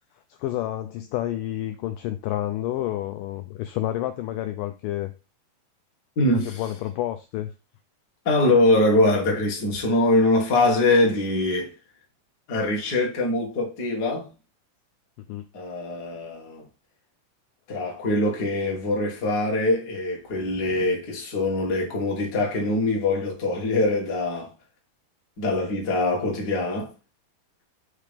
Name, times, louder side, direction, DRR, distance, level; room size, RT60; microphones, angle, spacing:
voice 1, 0.3-5.1 6.5-7.5 15.3-15.5, left 13 dB, 85° left, 1.9 m, -29 dB
voice 2, 6.1-6.6 8.2-11.7 12.5-14.3 15.5-16.6 17.7-24.5 25.4-26.9, left 2 dB, 45° left, 1.2 m, -23 dB
5.8 x 3.3 x 5.1 m
omnidirectional pair, 4.3 m